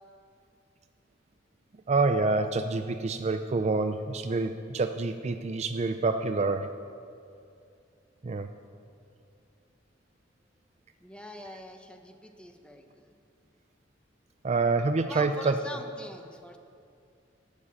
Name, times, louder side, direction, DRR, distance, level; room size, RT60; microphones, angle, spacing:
voice 1, 1.9-6.7 8.2-8.5 14.4-15.6, right 3 dB, 35° right, 9 dB, 0.4 m, -27 dB
voice 2, 11.0-13.1 15.1-16.6, left 1 dB, 5° left, 5 dB, 0.9 m, -43 dB
12.0 x 8.6 x 8.3 m, 2.5 s
head